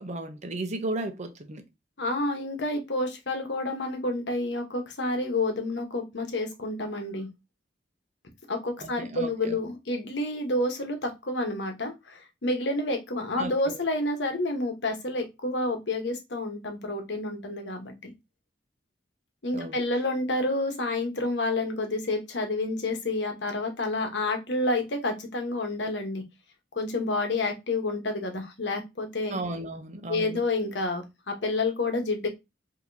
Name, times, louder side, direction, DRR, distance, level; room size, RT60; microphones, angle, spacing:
voice 1, 0.0-1.6 8.8-9.6 13.4-13.8 19.5-19.8 29.3-30.4, right 2 dB, 40° right, 0.7 m, -35 dB
voice 2, 2.0-7.3 8.5-17.9 19.4-26.2 26.7-29.4 30.1-32.3, left 2 dB, 75° left, 1.1 m, -29 dB
4.9 x 2.9 x 2.7 m
head